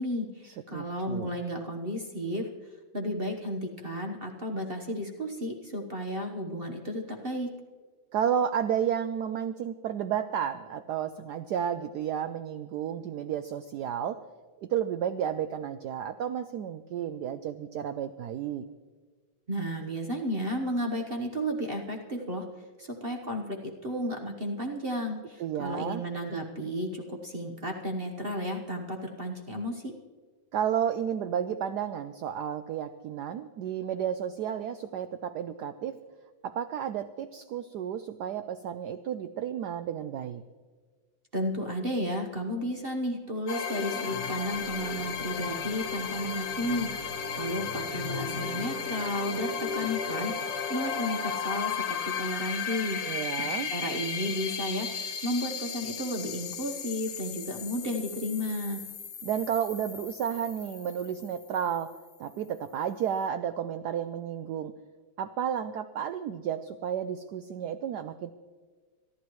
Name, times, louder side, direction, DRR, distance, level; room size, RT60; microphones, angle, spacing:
voice 1, 0.0-2.5 2.9-7.5 19.5-22.5 22.8-29.9 41.3-47.1 47.4-53.0 53.4-58.8, equal, 40° right, 2 dB, 0.9 m, -33 dB
voice 2, 0.7-1.3 8.1-14.2 14.6-18.6 25.4-26.0 30.5-36.0 36.4-40.4 53.0-53.7 59.2-61.9 62.2-64.7 65.2-68.3, right 9 dB, 90° right, 11 dB, 0.9 m, -32 dB
sound 1, 43.5-61.9, left 6 dB, 55° left, 1.7 m, -35 dB
26.0 x 11.5 x 3.1 m, 1.5 s
omnidirectional pair, 2.3 m